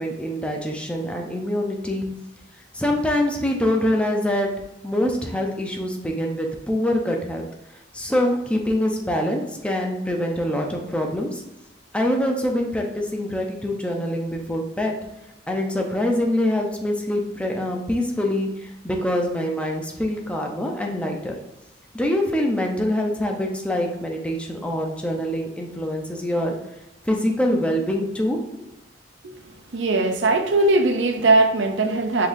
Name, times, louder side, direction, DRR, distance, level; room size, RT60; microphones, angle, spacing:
voice 1, 0.0-2.1 2.7-4.5 4.8-7.5 7.9-11.4 11.9-15.0 15.5-21.4 21.9-26.5 27.0-28.4, left 1 dB, 5° left, 1 dB, 0.6 m, -24 dB
voice 2, 29.7-32.3, right 2 dB, 70° right, 6 dB, 0.6 m, -19 dB
5.2 x 3.8 x 2.7 m, 0.87 s
head